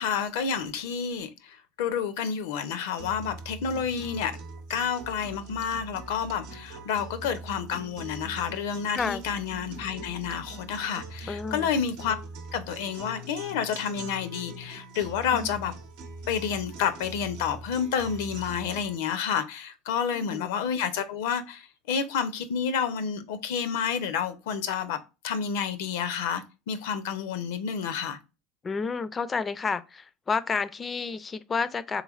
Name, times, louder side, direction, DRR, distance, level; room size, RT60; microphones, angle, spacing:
voice 1, 0.0-4.4 4.7-12.2 12.5-15.7 16.3-25.0 25.2-28.2, left 7 dB, 75° left, 0.5 m, -30 dB
sound 1, 3.0-19.0, right 2 dB, 75° right, 0.7 m, -42 dB
voice 2, 11.3-11.7 15.3-15.5 20.1-20.5 28.6-32.0, left 5 dB, 25° left, 0.4 m, -30 dB
3.4 x 3.2 x 2.3 m
supercardioid pair, 100°, 0 cm